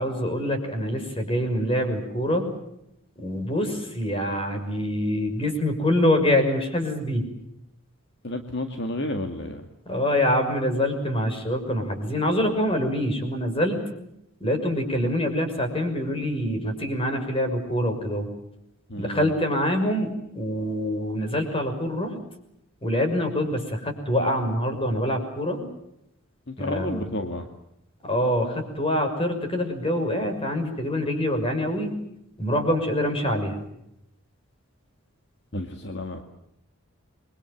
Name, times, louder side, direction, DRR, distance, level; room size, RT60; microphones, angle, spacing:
voice 1, 0.0-2.5 3.2-7.3 9.9-13.8 14.4-18.3 19.0-20.1 20.3-22.1 22.8-25.6 26.6-27.1 28.0-32.0 32.4-33.6, left 1 dB, 25° left, 6 dB, 6.1 m, -25 dB
voice 2, 8.2-9.6 18.9-19.3 26.5-27.5 35.5-36.2, left 1 dB, 55° left, 5 dB, 2.2 m, -31 dB
29.0 x 23.5 x 7.4 m, 0.80 s
head